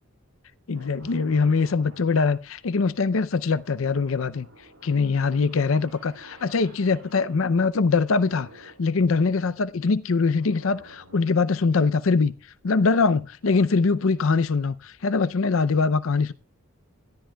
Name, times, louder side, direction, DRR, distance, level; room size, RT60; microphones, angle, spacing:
voice 1, 0.7-4.5 4.8-12.3 12.6-16.3, left 4 dB, 70° left, 0.5 m, -23 dB
sound 1, 0.7-7.8 8.1-9.6 10.3-11.5, right 1 dB, 75° right, 5.8 m, -51 dB
17.5 x 13.0 x 2.3 m
head